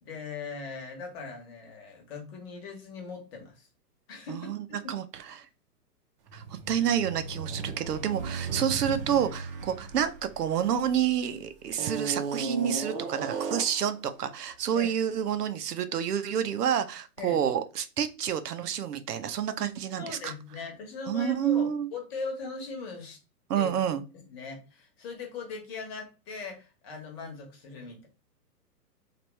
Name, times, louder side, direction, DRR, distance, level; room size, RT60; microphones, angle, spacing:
voice 1, 0.0-3.7 4.1-4.9 6.8-6.9 14.7-14.9 17.2-17.4 20.0-23.2 23.5-23.7 24.1-28.1, left 4 dB, 40° left, 2 dB, 1.1 m, -40 dB
sound 1, 6.3-11.1 11.7-13.9, right 4 dB, 35° right, 0.7 m, -36 dB
voice 2, 6.3-20.3 21.1-21.9 23.5-24.0, right 9 dB, 70° right, 10 dB, 0.6 m, -29 dB
3.0 x 2.5 x 3.1 m, 0.32 s
hypercardioid pair, 135°, 48 cm